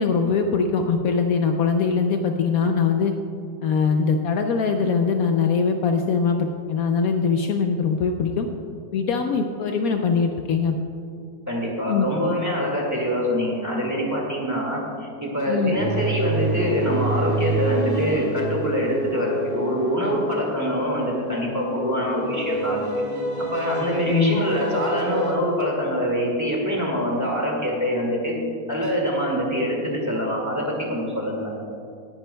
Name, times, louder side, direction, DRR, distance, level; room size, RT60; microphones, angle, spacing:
voice 1, 0.0-3.1 3.6-8.5 8.9-10.8 11.9-12.1 15.5-15.8 24.0-24.4, left 5 dB, 85° left, 4 dB, 0.7 m, -22 dB
voice 2, 11.5-22.9 23.4-28.3 28.7-31.5, equal, 10° right, -3 dB, 1.8 m, -25 dB
sound 1, 15.7-25.3, right 1 dB, 60° right, 3.5 m, -28 dB
18.0 x 10.5 x 2.2 m, 2.5 s
omnidirectional pair, 2.1 m